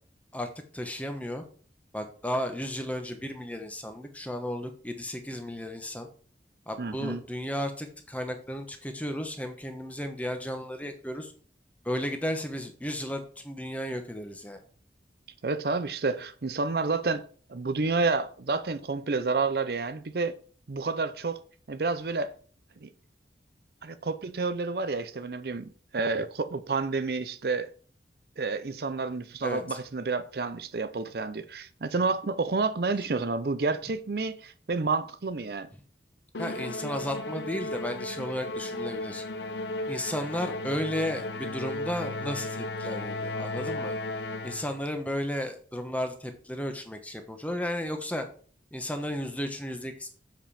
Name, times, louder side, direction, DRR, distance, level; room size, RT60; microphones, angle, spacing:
voice 1, 0.7-1.4 1.9-6.1 6.7-11.3 11.8-14.6 29.4-29.8 36.4-39.2 39.9-43.9 44.4-48.3 48.7-50.1, equal, 10° left, 1.1 m, -34 dB
voice 2, 6.8-7.2 15.4-17.2 17.5-20.3 20.7-21.4 21.7-22.3 22.8-22.9 23.8-27.7 28.4-35.7, right 3 dB, 60° right, 0.6 m, -29 dB
Musical instrument, 36.3-44.8, left 2 dB, 85° left, 0.8 m, -35 dB
7.4 x 5.3 x 5.7 m
head